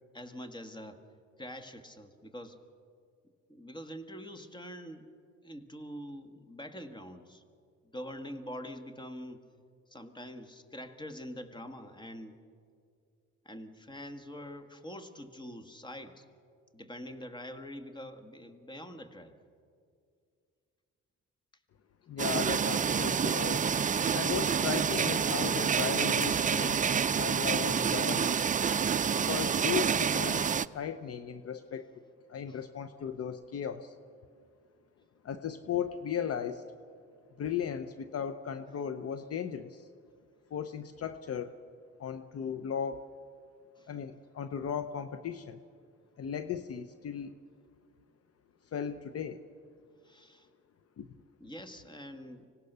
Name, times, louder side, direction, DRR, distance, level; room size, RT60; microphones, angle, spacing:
voice 1, 0.1-1.0 1.4-2.6 3.5-5.1 5.4-7.4 7.9-9.4 9.9-12.4 13.4-16.2 16.7-19.3 32.5-32.6 43.8-43.9 50.0-50.5 51.4-52.5, equal, 15° left, 8 dB, 1.7 m, -45 dB
voice 2, 22.1-23.7 24.1-26.8 27.2-28.4 29.2-30.5 30.7-31.9 32.3-34.0 35.2-36.6 37.4-39.9 40.5-41.5 42.0-43.0 43.9-45.6 46.2-47.4 48.7-49.4 51.0-51.1, left 8 dB, 50° left, 10 dB, 0.8 m, -36 dB
sound 1, 22.2-30.7, right 7 dB, 25° right, 0.5 m, -28 dB
25.0 x 18.0 x 6.8 m, 2.3 s
cardioid pair, 90°, 30 cm